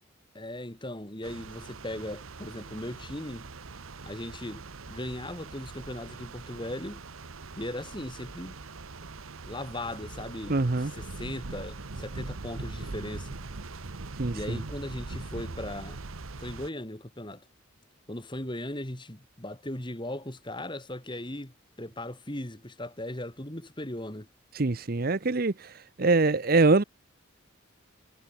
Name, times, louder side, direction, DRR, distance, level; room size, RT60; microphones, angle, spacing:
voice 1, 0.3-3.5 4.1-7.0 7.6-8.6 9.4-13.4 14.3-16.0 16.4-17.4 18.1-24.3, left 1 dB, 25° left, 2.6 m, -38 dB
sound 1, 1.2-16.7, right 3 dB, 85° right, 1.1 m, -42 dB
voice 2, 10.5-10.9 14.2-14.6 24.5-26.8, right 3 dB, 45° right, 0.8 m, -24 dB
head